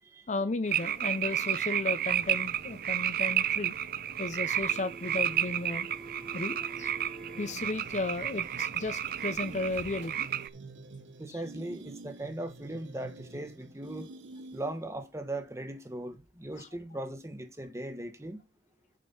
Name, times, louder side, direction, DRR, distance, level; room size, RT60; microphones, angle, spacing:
voice 1, 0.3-3.7 4.2-5.9 6.3-6.9 7.4-10.3 11.3-11.4 16.6-16.7, left 3 dB, 40° left, 0.6 m, -34 dB
sound 1, 0.7-10.5, right 11 dB, 50° right, 0.5 m, -32 dB
sound 2, 2.1-10.1, right 2 dB, 70° right, 2.8 m, -50 dB
sound 3, 7.4-14.9, right 3 dB, 90° right, 1.2 m, -48 dB
voice 2, 11.2-14.1 14.5-18.4, right 1 dB, 15° right, 1.3 m, -39 dB
7.6 x 5.3 x 5.5 m
head